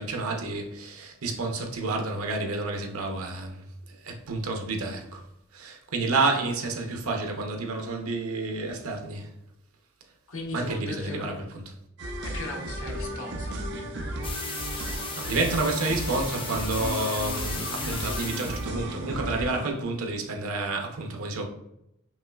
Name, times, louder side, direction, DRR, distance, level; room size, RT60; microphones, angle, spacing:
voice 1, 0.0-5.2 5.5-9.3 10.5-11.7 14.7-21.5, right 3 dB, 85° right, 0.7 m, -30 dB
voice 2, 10.3-11.3 12.2-13.7, left 2 dB, 80° left, 0.9 m, -37 dB
sound 1, 12.0-19.7, right 1 dB, 50° right, 0.5 m, -34 dB
sound 2, 14.2-18.7, left 4 dB, 25° left, 0.4 m, -36 dB
5.4 x 3.0 x 2.3 m
head